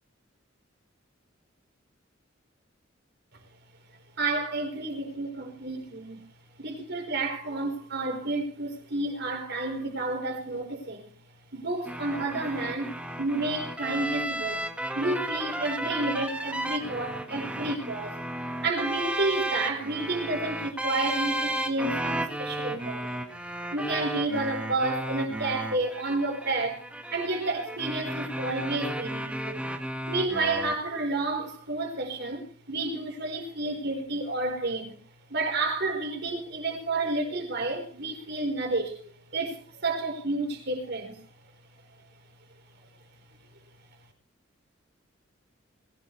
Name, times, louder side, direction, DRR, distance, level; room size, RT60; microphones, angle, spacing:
voice 1, 4.2-6.2 6.6-11.1 11.5-14.7 14.9-18.2 18.6-23.2 23.7-29.7 30.1-35.0 35.3-41.2, right 2 dB, 55° right, 4.6 m, -30 dB
sound 1, 11.8-30.8, right 1 dB, 5° right, 1.5 m, -33 dB
21.5 x 16.5 x 3.3 m
head